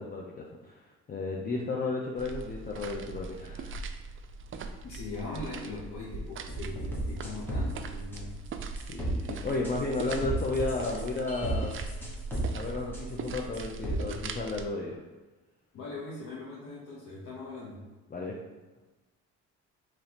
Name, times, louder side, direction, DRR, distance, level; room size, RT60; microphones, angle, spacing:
voice 1, 0.0-3.8 8.9-11.7 12.5-14.9 18.1-18.4, left 3 dB, 30° left, -2 dB, 0.6 m, -33 dB
sound 1, 2.2-14.7, right 4 dB, 45° right, 0.4 m, -40 dB
voice 2, 4.8-8.4 15.7-17.8, left 3 dB, 70° left, -6 dB, 1.0 m, -40 dB
sound 2, 6.5-7.7 8.1-8.2 8.8-9.2 9.6-12.5 12.9-13.0 13.5-14.0, right 1 dB, 5° left, 1.1 m, -33 dB
4.2 x 3.0 x 2.9 m, 1.2 s
cardioid pair, 90°, 30 cm